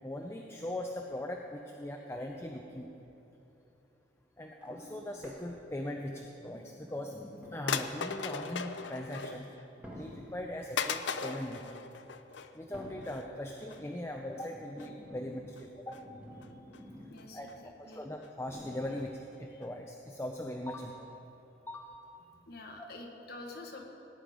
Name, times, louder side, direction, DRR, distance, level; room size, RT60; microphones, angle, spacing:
voice 1, 0.0-2.9 4.4-7.1 7.5-9.5 9.9-11.7 12.5-16.0 17.3-17.5 17.8-21.1 21.7-21.9 22.8-22.9, left 1 dB, 15° left, 2 dB, 0.6 m, -40 dB
sound 1, 4.6-5.9 6.4-7.9 8.7-9.0 9.8-10.5 11.7-12.0 12.7-13.4 14.1-17.4 17.6-17.7 18.4-19.2 20.0-20.1, equal, 10° right, 2.0 m, -50 dB
sound 2, 6.9-7.0 7.7-9.6 10.0-10.2 10.8-12.6 13.0-13.2 13.6-13.8 14.3-14.5 14.8-14.9 15.6-16.0 16.4-16.8 17.2-17.5 17.9-18.0 18.2-18.3 18.7-18.8 19.0-19.1 19.3-19.4 19.6-19.7, left 6 dB, 75° left, 0.6 m, -38 dB
voice 2, 17.1-18.0 22.5-23.8, left 2 dB, 55° left, 1 dB, 1.6 m, -47 dB
18.0 x 9.5 x 5.1 m, 3.0 s
head